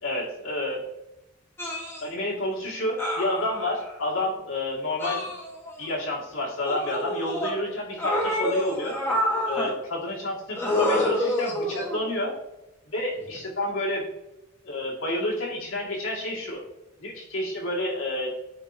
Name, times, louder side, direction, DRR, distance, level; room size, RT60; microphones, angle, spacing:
voice 1, 0.0-0.8 2.0-5.3 5.8-9.0 9.4-12.3 12.9-14.1 14.6-16.6 17.0-18.3, left 1 dB, 90° left, -3 dB, 1.9 m, -29 dB
sound 1, 1.6-2.0 3.0-3.9 5.0-5.9 6.7-7.5 8.0-9.7 10.6-12.1 13.2-13.4, left 1 dB, 10° left, 1.2 m, -28 dB
9.5 x 3.7 x 2.7 m, 0.92 s
head